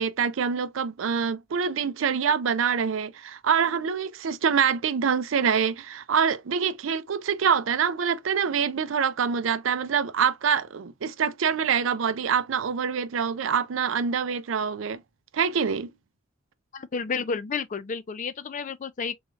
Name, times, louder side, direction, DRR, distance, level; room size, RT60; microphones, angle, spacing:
voice 1, 0.0-15.0 15.3-15.9, right 6 dB, 80° right, 0.5 m, -25 dB
voice 2, 16.7-19.2, left 5 dB, 40° left, 0.5 m, -31 dB
3.5 x 3.2 x 2.3 m
head